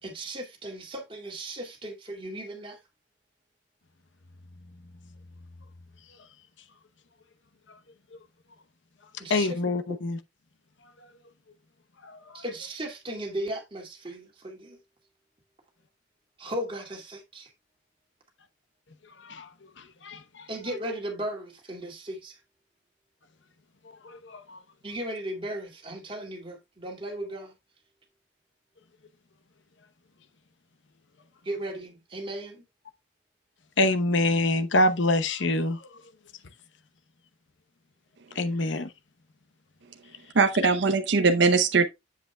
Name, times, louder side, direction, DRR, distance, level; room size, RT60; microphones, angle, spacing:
voice 1, 0.0-2.8 9.2-9.6 12.3-14.8 16.4-17.5 20.5-22.4 24.8-27.5 31.4-32.6, right 1 dB, 25° right, 2.3 m, -36 dB
voice 2, 9.3-10.2 19.2-19.5 20.0-20.2 24.3-24.6 33.8-35.8 38.4-38.9, left 2 dB, 70° left, 0.9 m, -25 dB
voice 3, 40.4-41.9, right 4 dB, 60° right, 0.7 m, -21 dB
7.8 x 7.6 x 2.2 m
head